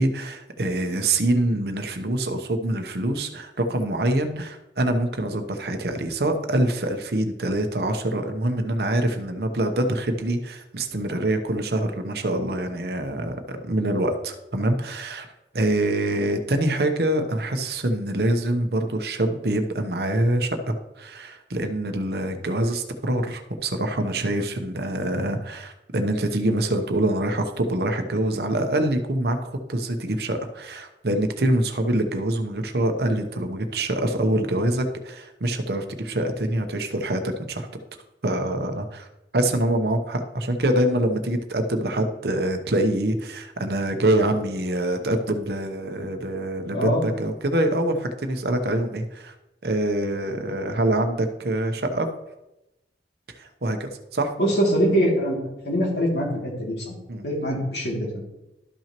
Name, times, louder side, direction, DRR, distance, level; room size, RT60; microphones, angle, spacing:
voice 1, 0.0-15.3 15.5-37.7 38.2-39.1 39.3-49.3 49.6-52.1 53.4-54.3 57.1-57.2, right 1 dB, 65° right, 6 dB, 0.9 m, -25 dB
voice 2, 54.4-55.4 55.6-56.9 57.2-58.2, equal, 70° left, -3 dB, 2.6 m, -23 dB
12.5 x 5.8 x 3.0 m, 0.94 s
head